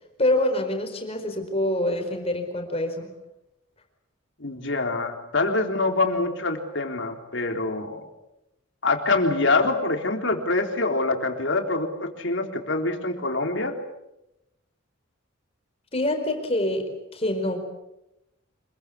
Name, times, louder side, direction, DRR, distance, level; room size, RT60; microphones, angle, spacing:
voice 1, 0.2-3.1 15.9-17.6, left 1 dB, 30° left, 5 dB, 4.6 m, -26 dB
voice 2, 4.4-8.1 8.8-13.8, left 3 dB, 60° left, 4 dB, 3.7 m, -25 dB
26.5 x 23.0 x 8.5 m, 0.89 s
head